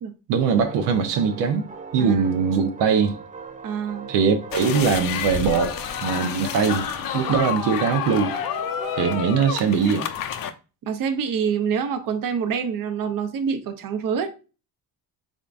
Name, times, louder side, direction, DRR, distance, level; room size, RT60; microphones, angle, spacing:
voice 1, 0.3-1.6 1.9-3.2 4.1-6.9 7.1-8.4 9.0-10.1, right 6 dB, 90° right, 0.7 m, -21 dB
sound 1, 0.6-9.3, right 6 dB, 20° right, 0.3 m, -40 dB
voice 2, 3.6-4.1 10.9-14.3, right 7 dB, 50° right, 0.7 m, -26 dB
sound 2, 4.5-10.5, left 9 dB, 55° left, 0.5 m, -29 dB
3.6 x 3.6 x 2.4 m
cardioid pair, 105°, 42 cm